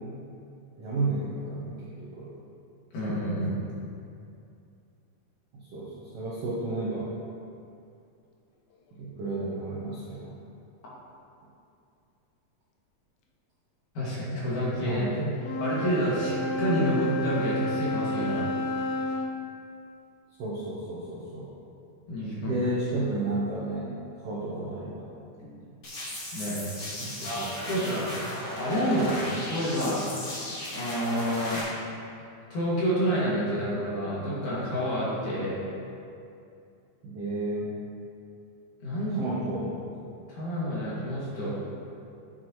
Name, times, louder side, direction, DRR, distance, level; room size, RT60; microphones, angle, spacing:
voice 1, 0.8-2.3 5.7-7.1 9.0-10.3 14.8-15.3 20.4-21.5 22.4-23.9 24.2-25.1 27.0-27.7 37.0-37.7 39.1-39.8, right 2 dB, 70° right, -7 dB, 1.5 m, -32 dB
voice 2, 2.9-3.6 13.9-15.0 15.6-18.5 22.1-22.6 25.4-25.6 26.3-26.6 27.2-28.2 28.6-29.2 29.5-30.1 30.7-31.6 32.5-35.6 38.8-39.2 40.3-41.6, equal, 60° left, -8 dB, 3.4 m, -28 dB
Wind instrument woodwind instrument, 15.4-19.3, left 1 dB, 85° left, 2.6 m, -30 dB
sound 1, 25.8-31.6, left 1 dB, 40° left, 1.9 m, -36 dB
9.2 x 8.6 x 3.0 m, 2.5 s
omnidirectional pair, 4.0 m